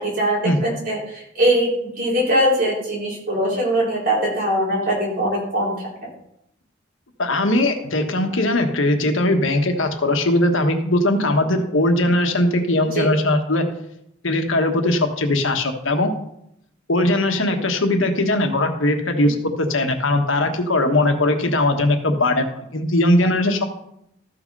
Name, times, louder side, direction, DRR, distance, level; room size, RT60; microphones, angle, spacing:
voice 1, 0.0-1.7 2.0-6.1 13.0-13.1, right 1 dB, 45° right, -4 dB, 4.4 m, -21 dB
voice 2, 7.2-13.6 14.2-16.1 16.9-23.6, left 1 dB, 85° left, 5 dB, 1.4 m, -20 dB
13.5 x 5.9 x 5.4 m, 0.77 s
head